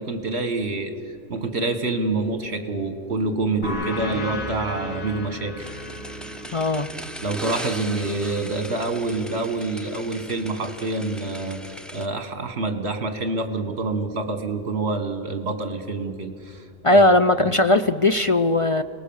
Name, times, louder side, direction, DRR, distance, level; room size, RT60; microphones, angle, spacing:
voice 1, 0.0-5.7 7.2-16.7 16.9-17.0 17.4-17.5, right 3 dB, 55° right, 7 dB, 1.9 m, -27 dB
sound 1, 3.6-8.8, left 1 dB, 85° left, 4.0 m, -34 dB
sound 2, 5.6-12.1, equal, ahead, 0.9 m, -38 dB
voice 2, 6.5-6.9 16.8-18.8, left 2 dB, 45° left, 9 dB, 0.4 m, -18 dB
29.0 x 19.0 x 7.2 m, 2.2 s
omnidirectional pair, 1.3 m